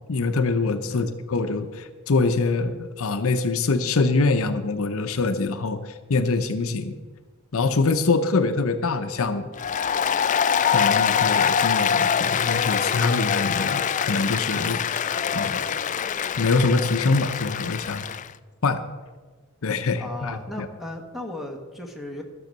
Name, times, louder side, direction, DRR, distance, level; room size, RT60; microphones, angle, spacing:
voice 1, 0.1-7.0 7.5-9.5 10.6-15.6 16.4-18.1 18.6-18.8 19.6-20.7, left 3 dB, 70° left, 9 dB, 0.7 m, -24 dB
voice 2, 0.8-1.1 20.0-22.2, left 1 dB, ahead, 2 dB, 1.5 m, -36 dB
Applause, 9.5-18.3, left 7 dB, 35° left, 0.4 m, -24 dB
13.5 x 7.0 x 6.6 m, 1.3 s
head